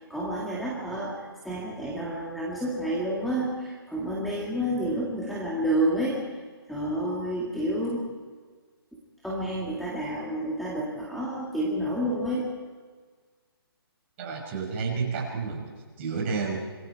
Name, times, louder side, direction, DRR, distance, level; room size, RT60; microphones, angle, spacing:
voice 1, 0.1-6.3 6.7-8.1 9.2-12.5, right 1 dB, ahead, -6 dB, 2.2 m, -29 dB
voice 2, 14.2-16.6, right 5 dB, 30° right, 0 dB, 5.6 m, -31 dB
27.0 x 22.0 x 4.7 m, 1.5 s
hypercardioid pair, 155°, 13 cm